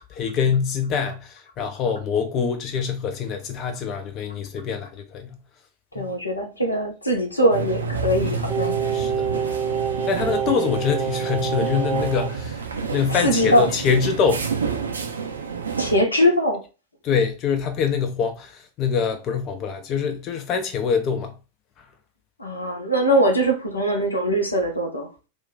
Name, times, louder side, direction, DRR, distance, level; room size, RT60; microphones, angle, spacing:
voice 1, 0.0-5.3 6.0-6.1 8.7-9.3 10.1-12.6 12.9-14.8 17.0-21.3 21.8-21.9, left 6 dB, 35° left, 0.4 m, -25 dB
voice 2, 5.9-8.8 13.1-13.7 15.8-16.6 22.4-25.1, equal, 80° left, 0.7 m, -21 dB
sound 1, 7.5-16.0, right 5 dB, 70° right, 0.4 m, -29 dB
Singing, 8.5-12.4 12.7-12.8, right 7 dB, 15° right, 0.6 m, -26 dB
2.4 x 2.2 x 3.9 m
figure-of-eight pair, 90°, 0 cm